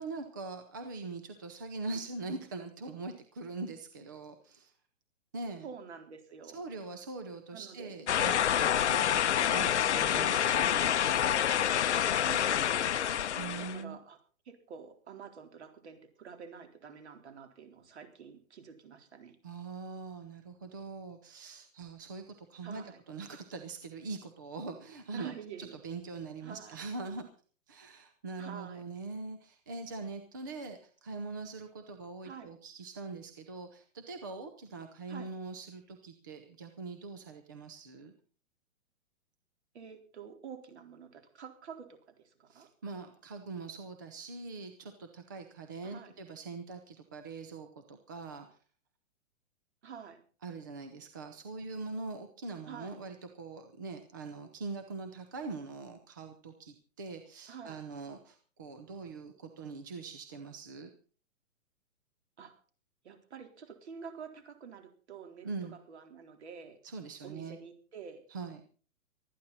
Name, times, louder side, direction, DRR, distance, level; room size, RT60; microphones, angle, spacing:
voice 1, 0.0-4.7 5.3-5.7 6.4-10.9 13.4-14.0 19.4-27.3 27.7-38.1 42.5-48.6 50.4-60.9 65.4-65.8 66.8-67.6 68.3-68.6, right 3 dB, 15° right, 6 dB, 0.6 m, -42 dB
voice 2, 5.6-6.6 7.5-8.0 9.5-9.8 12.2-13.2 13.6-14.2 14.5-19.4 22.6-23.0 25.1-25.7 26.4-26.7 28.4-28.8 32.2-32.5 35.1-35.3 39.7-42.7 45.8-46.1 49.8-50.2 52.7-52.9 57.5-57.8 62.4-62.5 63.0-66.8 67.2-68.3, right 6 dB, 55° right, 6 dB, 4.0 m, -48 dB
sound 1, 8.1-13.8, left 9 dB, 55° left, 0.8 m, -27 dB
19.5 x 13.5 x 4.2 m, 0.40 s
hypercardioid pair, 175°, 40 cm